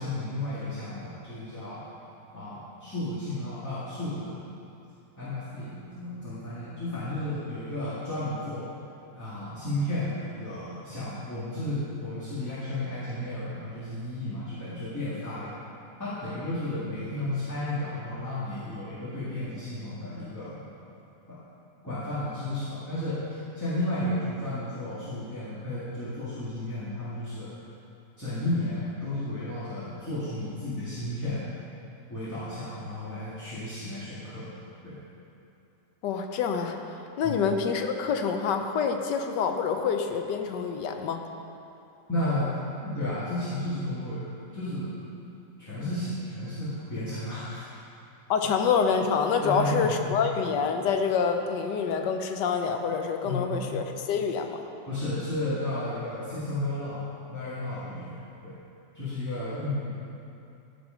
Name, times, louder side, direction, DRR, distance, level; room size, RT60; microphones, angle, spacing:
voice 1, 0.0-1.9 2.3-4.3 5.2-8.7 9.1-15.5 16.0-20.7 21.3-21.4 21.8-27.5 28.2-31.4 32.1-34.6 34.8-34.9 37.2-37.4 42.1-42.5 42.8-44.2 44.5-44.9 45.6-47.6 49.4-50.2 53.2-53.7 54.9-57.0 57.3-58.2 58.4-58.5 58.9-60.1, left 1 dB, 10° left, -13 dB, 2.0 m, -33 dB
voice 2, 36.0-41.2 48.3-54.6, left 6 dB, 90° left, 5 dB, 1.4 m, -27 dB
14.0 x 5.3 x 5.1 m, 2.8 s
omnidirectional pair, 1.8 m